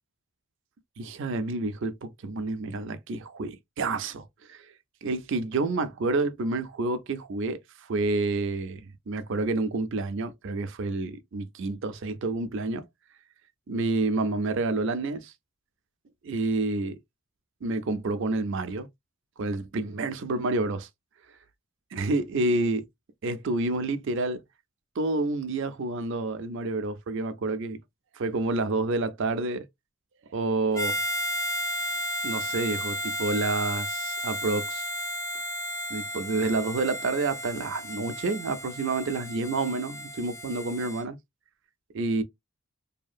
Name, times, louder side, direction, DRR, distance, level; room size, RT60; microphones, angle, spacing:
voice 1, 1.0-4.7 5.0-7.6 7.9-12.8 13.7-15.3 16.2-17.0 17.6-18.9 19.4-20.9 21.9-22.8 23.2-24.4 25.0-27.8 28.2-29.7 30.3-31.0 32.2-34.8 35.9-41.2 41.9-42.2, right 3 dB, 55° right, 0.4 m, -29 dB
Harmonica, 30.7-41.0, equal, 15° left, 0.4 m, -33 dB
2.7 x 2.4 x 2.5 m
head